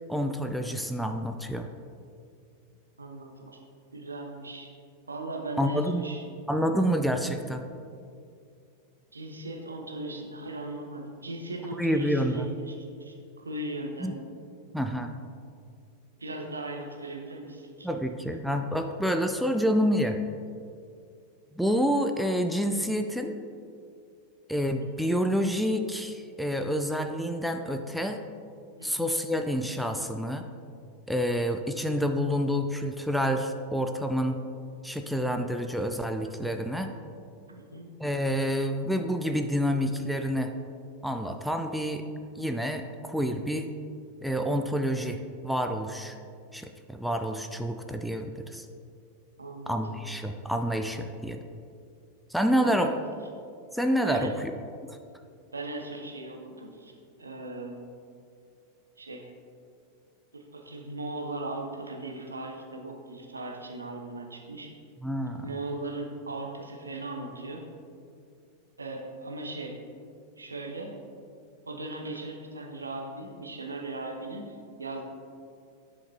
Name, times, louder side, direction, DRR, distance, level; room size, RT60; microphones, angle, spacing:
voice 1, 0.1-1.7 5.6-6.0 6.5-7.6 11.8-12.5 14.0-14.1 14.7-15.1 17.8-20.2 21.6-23.4 24.5-28.2 28.8-30.4 31.1-34.4 34.8-36.9 38.0-40.5 41.0-42.0 42.4-43.7 44.2-45.2 45.4-46.2 46.5-48.7 49.7-51.4 52.3-52.9 53.7-54.5 65.0-65.5, equal, ahead, 5 dB, 0.4 m, -28 dB
voice 2, 3.0-3.6 3.9-4.7 5.1-6.3 9.1-14.1 16.2-17.9 28.8-29.1 37.5-37.9 49.4-50.0 52.5-52.9 54.1-54.3 55.5-57.8 59.0-59.3 60.3-64.7 65.4-67.6 68.8-69.8 70.4-70.9 71.7-75.0, right 2 dB, 75° right, 2 dB, 0.8 m, -38 dB
10.5 x 5.0 x 2.7 m, 2.4 s
figure-of-eight pair, 90°, 0 cm